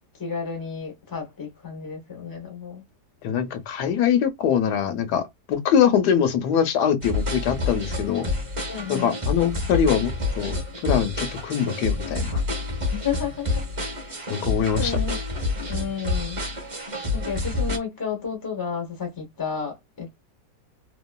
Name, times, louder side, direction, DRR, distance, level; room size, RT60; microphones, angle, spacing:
voice 1, 0.2-2.8 8.7-9.1 12.9-13.6 14.8-15.2 15.7-16.4 17.1-20.1, left 6 dB, 20° left, 0.7 m, -31 dB
voice 2, 3.2-8.3 8.9-10.5 10.8-12.4 14.3-15.0, left 8 dB, 75° left, 1.2 m, -23 dB
sound 1, 7.0-17.8, left 3 dB, 30° right, 0.7 m, -28 dB
2.9 x 2.3 x 2.3 m
omnidirectional pair, 1.8 m